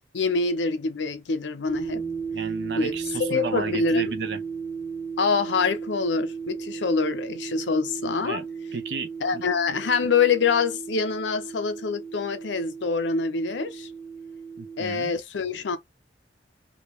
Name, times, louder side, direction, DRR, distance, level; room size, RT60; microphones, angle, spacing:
voice 1, 0.1-2.0 2.8-3.0 3.3-4.1 5.2-8.4 9.2-13.9 14.8-15.8, left 4 dB, 75° left, 0.6 m, -25 dB
sound 1, 1.7-14.8, right 5 dB, ahead, 0.5 m, -35 dB
voice 2, 2.3-4.4 8.3-8.5 8.7-9.4 14.6-15.1, right 4 dB, 65° right, 0.6 m, -33 dB
2.6 x 2.1 x 3.0 m
head